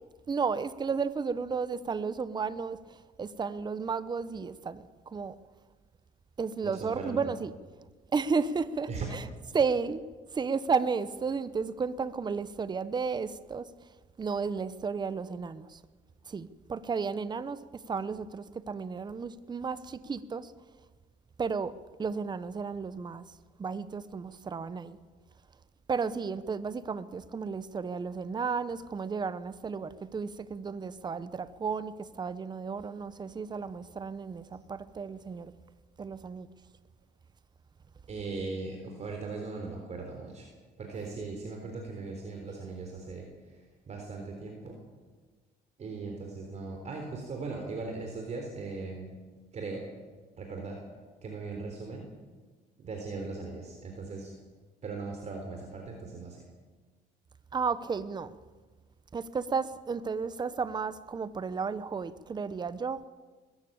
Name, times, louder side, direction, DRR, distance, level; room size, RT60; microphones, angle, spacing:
voice 1, 0.3-5.4 6.4-7.5 8.1-9.3 9.5-10.0 10.3-13.9 14.2-15.8 16.3-20.5 21.4-21.7 22.0-23.2 23.6-25.0 25.9-35.5 36.0-36.5 57.5-58.4 59.1-63.0, right 5 dB, 25° right, 0.9 m, -33 dB
voice 2, 6.6-7.3 8.9-9.1 38.1-40.5 40.8-43.6 43.9-44.8 45.8-49.2 49.5-49.9 50.4-50.8 51.2-52.1 52.8-54.3 54.8-56.4, right 3 dB, 40° right, 3.8 m, -39 dB
21.0 x 14.0 x 8.7 m
cardioid pair, 110°, 17 cm